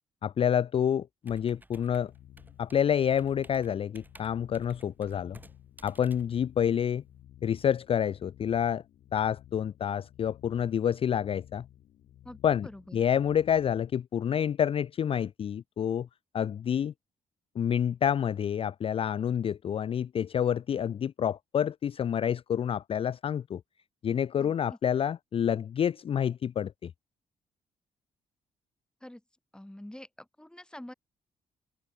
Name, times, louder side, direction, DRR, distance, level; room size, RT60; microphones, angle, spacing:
voice 1, 0.2-2.1 2.6-5.4 5.8-7.0 7.4-8.8 9.1-11.6 12.4-12.7 12.9-16.1 16.3-16.9 17.6-23.6 24.0-26.9, left 9 dB, 45° left, 0.4 m, -28 dB
Computer keyboard, 1.2-7.2, right 2 dB, 15° right, 4.0 m, -55 dB
sound 1, 1.8-14.0, left 11 dB, 75° left, 1.6 m, -55 dB
voice 2, 12.2-13.0 24.4-24.8 29.0-29.2 29.5-30.9, left 1 dB, 5° left, 3.5 m, -46 dB
open air
cardioid pair, 75°, 14 cm